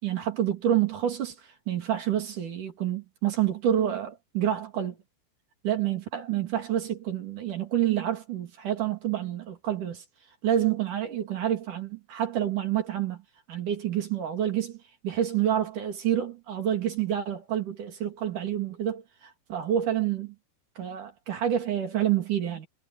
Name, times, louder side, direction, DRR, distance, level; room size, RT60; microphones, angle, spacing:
voice 1, 0.0-1.4 1.7-5.0 5.6-10.0 10.4-13.2 13.5-14.8 15.0-20.4 20.8-22.7, right 10 dB, 50° right, 3.7 m, -28 dB
omnidirectional pair, 5.3 m